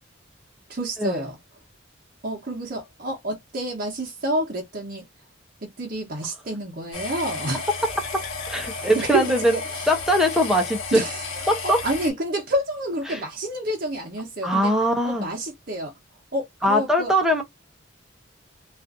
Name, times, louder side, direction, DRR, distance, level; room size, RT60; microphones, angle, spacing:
voice 1, 0.7-1.4 2.2-5.1 5.6-7.7 8.9-9.9 10.9-14.7 15.0-15.9 16.3-17.1, right 1 dB, 45° right, 0.7 m, -29 dB
sound 1, 6.9-12.1, left 4 dB, 80° left, 1.0 m, -33 dB
voice 2, 8.5-9.5 9.9-10.8 11.5-11.8 13.1-13.2 14.4-15.3 16.6-17.4, equal, ahead, 0.5 m, -21 dB
2.4 x 2.4 x 2.4 m
head